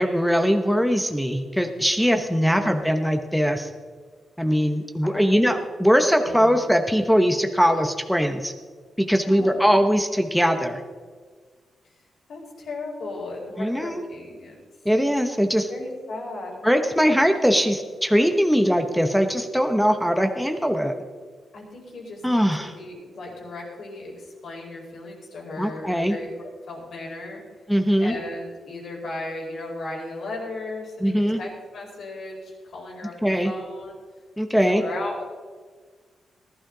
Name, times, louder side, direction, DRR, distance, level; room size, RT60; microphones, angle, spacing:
voice 1, 0.0-3.7 4.4-8.5 9.0-10.8 13.6-14.0 14.8-15.7 16.6-20.9 22.2-22.7 25.6-26.1 27.7-28.1 31.0-31.4 33.2-33.5 34.4-34.8, equal, ahead, 6 dB, 0.9 m, -21 dB
voice 2, 2.4-2.9 5.0-5.6 6.2-6.6 9.3-9.8 12.3-14.6 15.7-16.6 21.5-27.4 28.0-33.9 34.5-35.2, left 2 dB, 65° left, -2 dB, 4.9 m, -36 dB
19.0 x 12.0 x 3.9 m, 1.5 s
wide cardioid pair, 140°, 0 cm